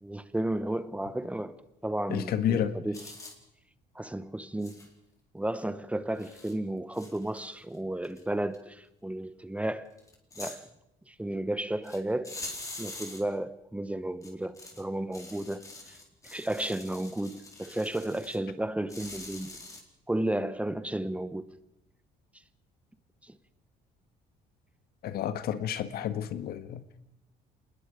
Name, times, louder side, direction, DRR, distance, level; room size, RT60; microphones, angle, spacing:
voice 1, 0.0-1.6 1.8-3.0 3.9-4.8 5.3-9.9 10.4-10.7 11.1-12.4 12.8-16.0 16.2-19.6 20.1-21.5 23.2-23.4, right 1 dB, 10° right, 1.0 m, -33 dB
voice 2, 2.1-2.8 25.0-27.0, left 9 dB, 65° left, 1.5 m, -30 dB
sound 1, 2.9-3.4 4.6-4.9 5.6-5.7 6.2-6.5 6.9-7.8 8.0-8.2 8.5-8.6 10.0-10.6 11.8-12.0 12.2-13.2 14.2-14.8 15.1-18.4 18.9-19.8, left 2 dB, 20° left, 4.1 m, -44 dB
27.0 x 20.5 x 5.2 m
cardioid pair, 110°, 17 cm